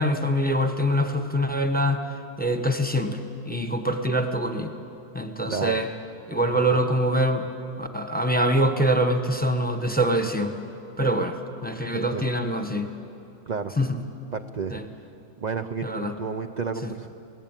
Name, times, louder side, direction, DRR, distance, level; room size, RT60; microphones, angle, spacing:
voice 1, 0.0-2.0 2.4-4.7 5.1-5.9 6.3-7.5 7.8-10.5 11.0-12.9 13.8-14.0 14.7-14.8 15.8-16.1, equal, 5° left, 6 dB, 1.2 m, -24 dB
voice 2, 6.4-6.8 11.9-12.3 13.5-13.7 14.3-15.1 15.4-15.9 16.2-17.1, right 5 dB, 45° right, 5 dB, 0.5 m, -31 dB
27.0 x 19.0 x 9.0 m, 2.8 s
omnidirectional pair, 1.6 m